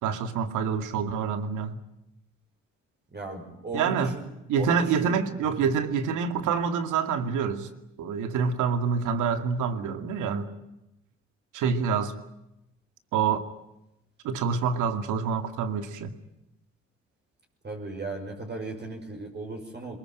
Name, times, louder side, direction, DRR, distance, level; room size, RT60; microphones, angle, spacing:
voice 1, 0.0-1.8 3.7-4.1 4.5-7.7 8.0-10.5 11.5-12.1 13.1-13.4 14.2-16.1, right 6 dB, 90° right, 9 dB, 2.4 m, -27 dB
voice 2, 3.1-4.2 4.5-5.2 5.5-5.7 17.6-20.0, right 2 dB, 35° right, 2 dB, 6.2 m, -36 dB
22.5 x 21.5 x 9.2 m, 0.88 s
cardioid pair, 90°, 30 cm